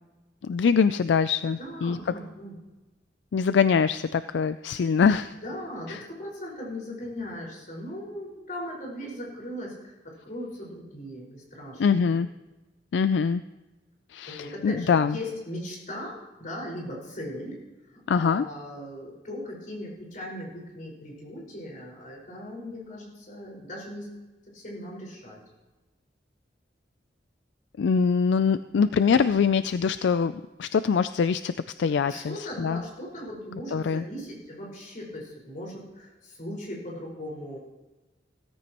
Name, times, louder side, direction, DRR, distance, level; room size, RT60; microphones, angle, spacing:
voice 1, 0.4-2.0 3.3-5.3 5.9-6.0 11.8-12.3 12.9-13.4 14.1-15.2 18.1-18.5 27.8-31.5 31.8-32.8 33.7-34.0, left 6 dB, 75° left, 13 dB, 0.4 m, -23 dB
voice 2, 1.5-2.6 5.3-12.2 14.3-17.6 17.9-24.1 24.4-25.4 32.0-37.6, left 1 dB, 50° left, -3 dB, 5.1 m, -38 dB
16.5 x 14.5 x 3.0 m, 1.1 s
head